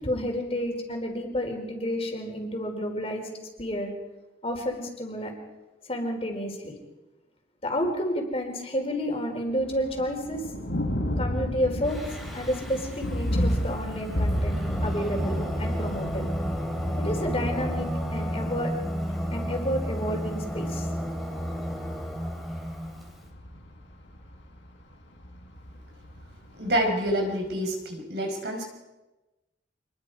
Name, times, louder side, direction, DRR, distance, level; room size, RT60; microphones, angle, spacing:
voice 1, 0.0-3.3 3.6-3.9 4.4-5.3 5.9-6.7 7.6-10.4 11.2-12.0 12.3-16.2 17.0-18.7 19.3-20.9, equal, 30° left, 2 dB, 4.3 m, -30 dB
Thunder, 9.5-27.5, equal, 80° left, 6.0 m, -33 dB
Singing, 11.8-23.2, equal, ahead, 3.3 m, -32 dB
voice 2, 26.6-28.6, right 1 dB, 60° right, 2 dB, 5.3 m, -27 dB
27.0 x 21.5 x 4.9 m, 1.1 s
head